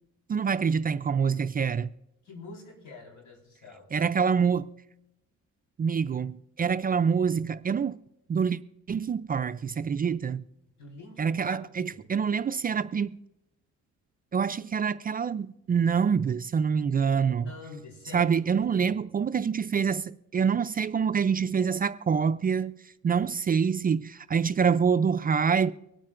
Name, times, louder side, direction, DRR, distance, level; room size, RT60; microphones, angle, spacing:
voice 1, 0.3-1.9 3.9-4.7 5.8-8.0 8.3-8.6 8.9-10.4 11.2-13.1 14.3-17.5 18.1-22.7 23.0-25.7, right 6 dB, 30° right, 0.4 m, -26 dB
voice 2, 2.2-3.9 10.8-12.0 17.3-19.0, left 3 dB, 75° left, 4.3 m, -46 dB
24.5 x 8.9 x 2.5 m
cardioid pair, 90°, 30 cm